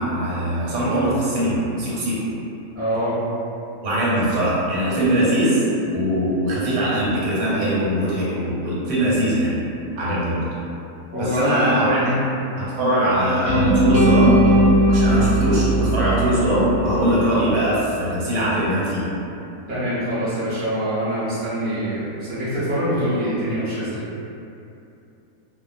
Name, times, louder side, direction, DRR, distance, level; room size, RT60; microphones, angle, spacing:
voice 1, 0.0-2.3 3.8-5.6 5.9-9.5 10.0-10.5 11.2-12.0 12.6-14.4 14.9-19.1, right 1 dB, 90° right, -8 dB, 1.4 m, -21 dB
voice 2, 2.7-3.1 11.1-12.1 19.7-24.0, equal, 15° right, -14 dB, 0.3 m, -24 dB
sound 1, 13.4-17.5, right 1 dB, 55° right, 0.7 m, -18 dB
2.7 x 2.0 x 2.4 m, 2.7 s
omnidirectional pair, 1.8 m